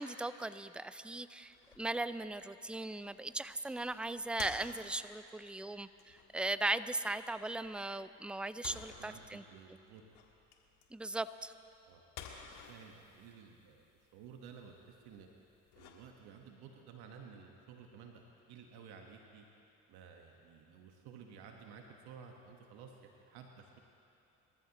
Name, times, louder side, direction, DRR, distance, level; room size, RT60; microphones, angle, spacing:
voice 1, 0.0-9.4 10.9-11.5, right 2 dB, 5° right, 14 dB, 0.4 m, -38 dB
sound 1, 1.4-16.5, left 7 dB, 75° left, 1.7 m, -55 dB
voice 2, 8.7-10.0 11.9-13.8 14.1-15.3 15.8-19.5 19.9-23.8, right 6 dB, 75° right, 2 dB, 1.3 m, -54 dB
26.0 x 13.5 x 2.9 m, 2.8 s
supercardioid pair, 65°, 39 cm